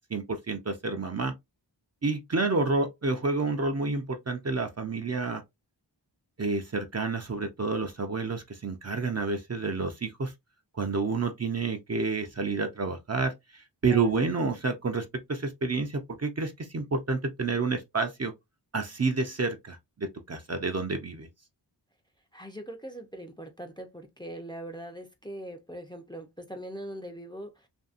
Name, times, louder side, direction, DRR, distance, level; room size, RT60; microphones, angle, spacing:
voice 1, 0.1-1.3 2.0-5.4 6.4-10.3 10.7-13.3 13.8-18.3 18.7-21.3, right 3 dB, 35° right, 0.5 m, -29 dB
voice 2, 13.9-14.3 22.3-27.7, right 1 dB, 10° left, 0.5 m, -41 dB
2.8 x 2.6 x 2.4 m
wide cardioid pair, 90°, 43 cm